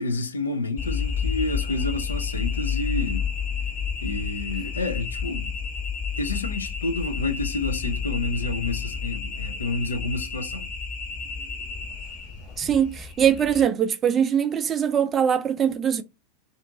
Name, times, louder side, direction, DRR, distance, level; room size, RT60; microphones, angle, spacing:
voice 1, 0.0-3.3 4.0-5.5 6.2-10.7, left 2 dB, 75° left, 0.5 m, -29 dB
sound 1, 0.8-13.7, left 6 dB, 35° left, 1.1 m, -30 dB
voice 2, 12.6-16.0, right 8 dB, 25° right, 0.4 m, -22 dB
2.5 x 2.5 x 2.6 m
figure-of-eight pair, 90°, 0 cm